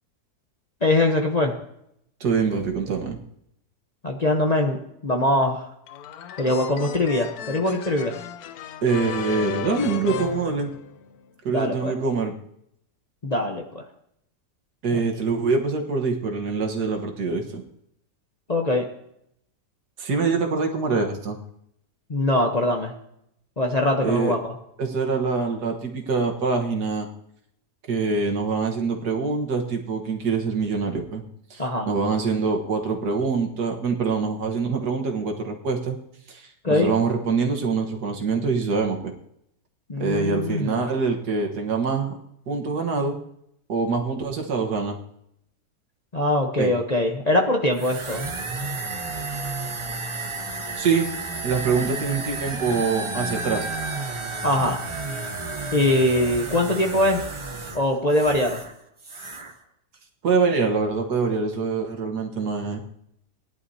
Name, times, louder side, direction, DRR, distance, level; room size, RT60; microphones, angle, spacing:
voice 1, 0.8-1.5 4.0-4.8 5.0-5.7 6.4-8.2 11.5-11.9 13.2-13.8 14.9-15.1 18.5-18.8 22.1-22.9 23.6-24.5 31.6-31.9 36.6-36.9 39.9-40.8 46.1-48.3 54.4-54.8 55.7-57.2 57.7-58.6, left 1 dB, 30° left, 1 dB, 0.9 m, -22 dB
voice 2, 2.2-3.2 8.8-10.7 11.4-12.3 14.8-17.6 20.0-21.4 24.0-24.4 24.8-27.1 27.9-31.2 31.5-36.0 36.3-39.1 40.0-42.2 42.5-43.2 43.7-45.0 46.6-46.7 50.8-51.1 51.4-53.7 60.2-62.8, right 4 dB, 70° right, 3 dB, 2.0 m, -24 dB
sound 1, 5.9-11.3, left 8 dB, 70° left, 1.1 m, -35 dB
sound 2, 47.7-58.7 59.0-59.5, right 3 dB, 30° right, 0.6 m, -32 dB
18.5 x 11.0 x 2.8 m, 0.74 s
omnidirectional pair, 1.8 m